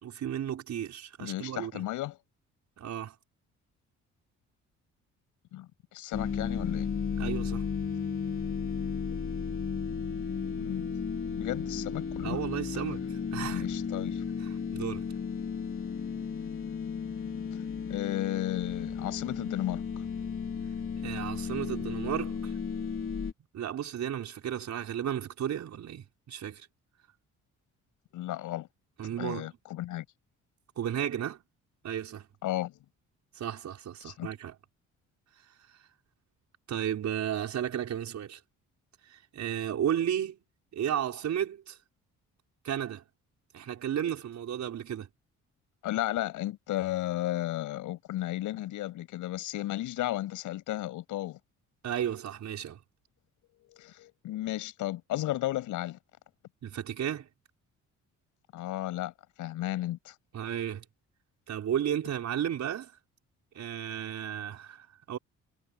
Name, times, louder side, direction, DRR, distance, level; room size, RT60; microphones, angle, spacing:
voice 1, 0.0-1.9 2.8-3.1 7.2-7.7 12.2-13.7 14.4-15.0 21.0-22.6 23.5-26.7 29.0-29.5 30.8-31.4 31.8-32.3 33.3-34.5 35.7-35.8 36.7-38.4 39.1-40.4 40.7-41.8 42.6-43.0 43.5-45.1 51.8-52.8 56.6-57.3 60.3-60.8 61.5-63.0 63.5-65.2, right 10 dB, 65° right, 5.4 m, -33 dB
voice 2, 1.2-2.2 5.5-6.9 9.1-9.2 10.6-10.9 11.3-12.4 12.7-12.9 13.4-14.2 17.9-20.1 28.1-28.7 29.2-30.0 32.4-32.8 34.0-34.3 45.8-51.4 53.7-56.0 58.5-59.1 59.4-60.1, left 15 dB, 90° left, 7.3 m, -34 dB
sound 1, 6.1-23.3, left 6 dB, 45° left, 3.6 m, -34 dB
cardioid pair, 90°, 30 cm